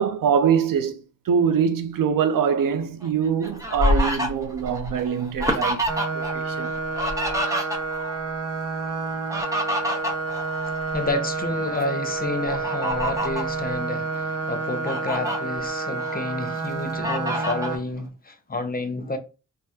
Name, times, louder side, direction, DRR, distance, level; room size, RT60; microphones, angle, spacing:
voice 1, 0.0-5.8 6.1-6.8, right 7 dB, 90° right, 0.5 m, -23 dB
Fowl, 3.0-6.3 6.6-8.1 9.1-11.2 11.6-11.8 12.5-13.5 14.1-14.2 14.6-15.4 15.9-16.6 17.0-17.8, equal, 10° right, 0.7 m, -27 dB
sound 1, 5.9-17.8, right 4 dB, 50° right, 0.8 m, -29 dB
voice 2, 10.7-19.2, left 2 dB, 30° left, 0.5 m, -30 dB
3.5 x 2.1 x 2.8 m
wide cardioid pair, 95°, 32 cm